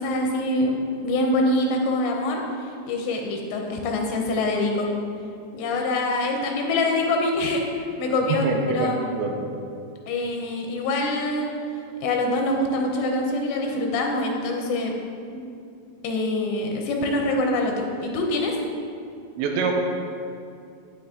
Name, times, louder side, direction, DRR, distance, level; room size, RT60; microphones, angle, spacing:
voice 1, 0.0-2.4 2.9-4.9 5.5-7.6 8.0-9.0 10.1-11.5 12.0-14.9 16.0-18.5, left 2 dB, 80° left, 1 dB, 2.9 m, -24 dB
voice 2, 8.3-9.4 19.4-19.7, right 4 dB, 80° right, 3 dB, 2.9 m, -25 dB
9.9 x 9.0 x 3.7 m, 2.5 s
omnidirectional pair, 5.4 m